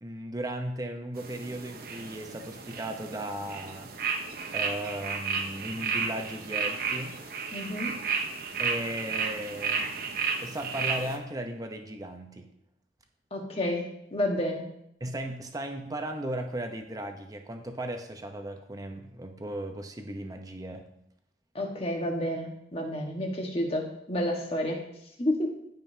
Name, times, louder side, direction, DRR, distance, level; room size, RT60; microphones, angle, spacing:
voice 1, 0.0-3.9 4.5-7.2 8.6-9.9 10.4-12.5 15.0-20.9, right 1 dB, 20° right, 5 dB, 0.8 m, -36 dB
sound 1, 1.2-11.2, right 5 dB, 55° right, 0.9 m, -33 dB
voice 2, 7.5-7.9 13.3-14.7 21.5-24.8 25.2-25.5, left 1 dB, 35° left, 1 dB, 1.4 m, -30 dB
15.0 x 5.3 x 2.8 m, 0.77 s
head